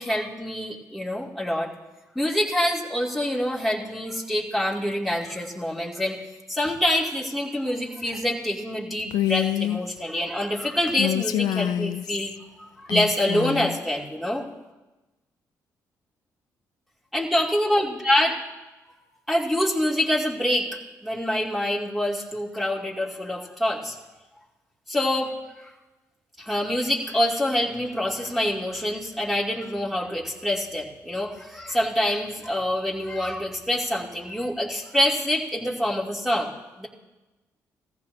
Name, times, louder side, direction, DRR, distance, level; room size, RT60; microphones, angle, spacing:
voice 1, 0.0-1.7 2.1-6.2 6.5-12.3 12.6-14.4 17.1-18.3 19.3-20.7 21.0-24.0 24.9-25.3 26.4-36.5 36.8-36.9, left 1 dB, ahead, -3 dB, 2.8 m, -26 dB
Female speech woman speaking, 9.1-9.8 10.9-12.4 12.9-13.8, left 12 dB, 80° left, 0.4 m, -26 dB
18.5 x 14.5 x 2.9 m, 1.1 s
supercardioid pair, 65°, 7 cm